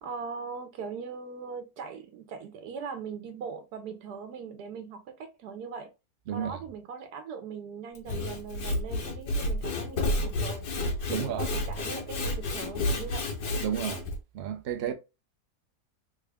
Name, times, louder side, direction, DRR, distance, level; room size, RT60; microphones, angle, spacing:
voice 1, 0.0-5.9 6.3-10.7 11.1-13.2 14.8-14.9, right 5 dB, 80° right, 1.3 m, -40 dB
voice 2, 6.3-6.6 11.1-11.5 11.8-11.9 13.6-14.1 14.3-14.9, right 9 dB, 65° right, 0.6 m, -32 dB
Sawing / Wood, 7.9-14.2, left 2 dB, 90° left, 1.5 m, -31 dB
3.6 x 2.4 x 3.3 m
omnidirectional pair, 1.7 m